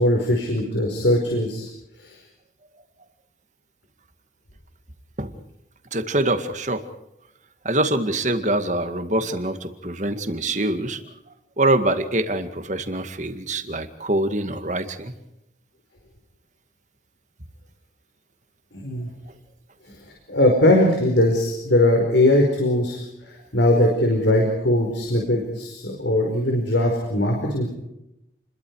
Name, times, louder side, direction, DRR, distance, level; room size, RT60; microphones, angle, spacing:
voice 1, 0.0-1.7 2.0-2.2 18.7-19.1 20.3-27.7, left 1 dB, 80° left, 1 dB, 5.1 m, -20 dB
voice 2, 5.9-6.9 7.6-11.0 11.6-15.1, right 1 dB, 40° right, 8 dB, 2.1 m, -24 dB
29.5 x 22.5 x 4.9 m, 0.85 s
head